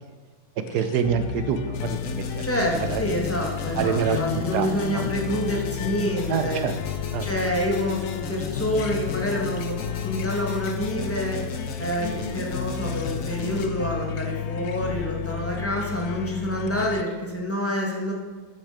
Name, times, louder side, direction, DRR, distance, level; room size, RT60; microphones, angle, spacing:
sound 1, 0.7-17.0, left 9 dB, 80° left, 1.1 m, -32 dB
voice 1, 0.7-2.4 2.9-3.0 3.8-4.2 4.5-5.1 6.3-6.8 7.1-7.3, right 7 dB, 90° right, 9 dB, 1.3 m, -26 dB
sound 2, 1.7-13.7, left 3 dB, 60° left, 1.4 m, -36 dB
voice 2, 2.4-6.6 7.2-11.4 11.8-18.1, equal, 10° left, -1 dB, 1.7 m, -27 dB
9.2 x 8.7 x 4.9 m, 1.5 s
omnidirectional pair, 1.7 m